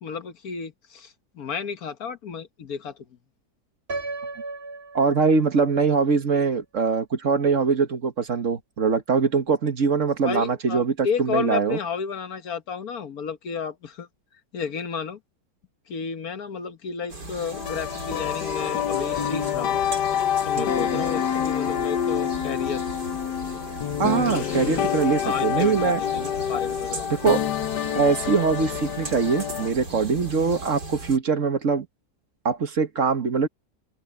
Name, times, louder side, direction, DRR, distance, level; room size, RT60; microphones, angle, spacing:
voice 1, 0.0-3.0 10.2-14.1 14.5-15.2 15.9-19.8 20.4-22.8 25.2-27.1, left 6 dB, 65° left, 1.6 m, -32 dB
Piano, 3.9-5.9, right 3 dB, 35° right, 1.7 m, -35 dB
voice 2, 4.9-11.8 20.5-21.0 24.0-26.0 27.1-27.4 27.9-31.9 32.4-33.5, right 5 dB, 50° right, 1.6 m, -23 dB
sound 1, 17.1-31.2, right 2 dB, 85° right, 5.3 m, -38 dB
sound 2, 17.5-29.7, left 9 dB, 85° left, 1.6 m, -27 dB
open air
omnidirectional pair, 1.7 m